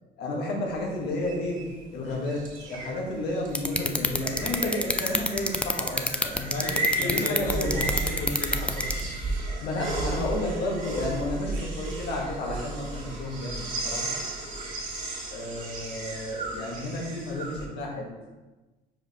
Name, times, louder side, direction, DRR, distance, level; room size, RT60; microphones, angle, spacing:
voice 1, 0.2-1.6 1.9-6.7 7.0-7.8 9.6-14.1 15.3-18.1, left 1 dB, 80° left, -1 dB, 1.6 m, -32 dB
sound 1, 0.7-17.6, right 2 dB, 50° right, 1.7 m, -34 dB
sound 2, 3.6-9.0, left 2 dB, 5° left, 0.4 m, -25 dB
voice 2, 6.5-8.9, left 2 dB, 50° left, -2 dB, 1.7 m, -33 dB
5.0 x 4.2 x 4.9 m, 1.1 s
cardioid pair, 110°, 17 cm